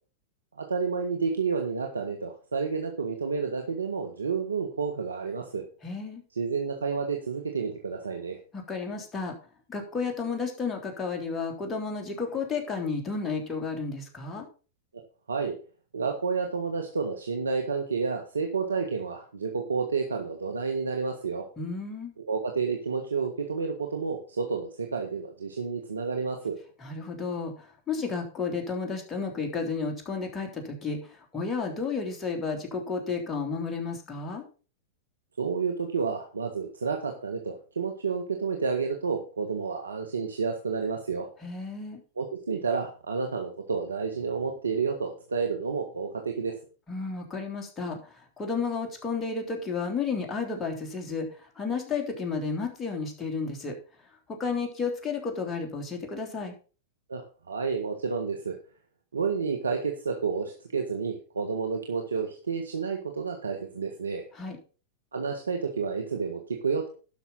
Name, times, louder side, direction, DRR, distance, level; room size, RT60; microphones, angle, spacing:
voice 1, 0.6-5.6 6.3-8.4 15.3-15.5 15.9-21.5 22.2-26.6 35.4-41.3 42.2-46.6 57.1-58.6 59.1-64.2 65.1-66.9, right 5 dB, 90° right, 3 dB, 1.5 m, -30 dB
voice 2, 5.8-6.2 8.5-9.4 9.7-14.5 21.6-22.1 26.8-34.4 41.4-42.0 46.9-53.8 54.3-56.5 64.3-64.6, left 4 dB, 20° left, 2 dB, 3.4 m, -32 dB
12.0 x 6.1 x 5.5 m, 0.37 s
hypercardioid pair, 105°, 0 cm